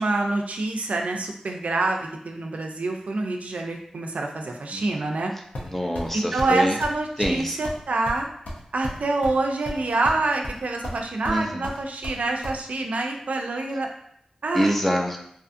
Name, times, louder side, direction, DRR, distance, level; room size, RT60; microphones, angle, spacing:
voice 1, 0.0-5.3 6.1-8.3 8.7-13.9 14.4-14.7, right 2 dB, 80° right, 2 dB, 0.3 m, -26 dB
sound 1, 5.5-6.1 6.4-6.5 6.8-7.0 7.2-7.4 7.6-7.8 8.1-9.4 9.6-10.2 10.4-11.0 11.2-12.6, equal, 90° left, 0.5 m, -33 dB
voice 2, 5.6-6.8 7.2-7.7 11.3-11.7 14.5-15.2, equal, 10° left, 2 dB, 0.4 m, -25 dB
2.6 x 2.4 x 2.5 m, 0.68 s
wide cardioid pair, 55°, 2 cm